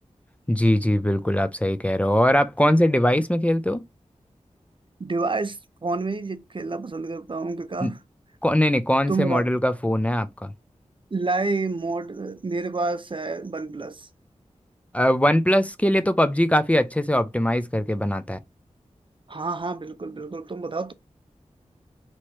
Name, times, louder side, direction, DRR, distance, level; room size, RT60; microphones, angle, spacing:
voice 1, 0.5-3.8 7.8-7.9 8.4-10.5 14.9-18.4, equal, 10° left, 0.5 m, -21 dB
voice 2, 5.0-8.0 9.1-9.5 11.1-14.1 19.3-20.9, right 3 dB, 40° right, 0.5 m, -28 dB
3.0 x 3.0 x 4.4 m
wide cardioid pair, 55°, 12 cm